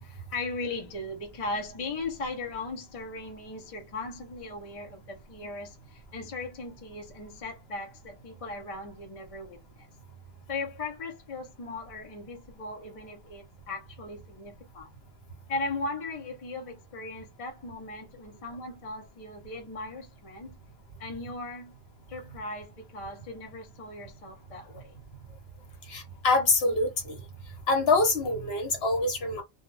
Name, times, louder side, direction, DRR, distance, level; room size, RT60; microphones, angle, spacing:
voice 1, 0.0-9.9 10.5-14.9 15.5-20.6 21.0-21.7 22.1-24.9 25.7-25.8, left 3 dB, 35° left, 0.7 m, -38 dB
voice 2, 25.9-27.2 27.7-29.4, left 3 dB, 70° left, 1.1 m, -25 dB
2.2 x 2.2 x 3.1 m
omnidirectional pair, 1.1 m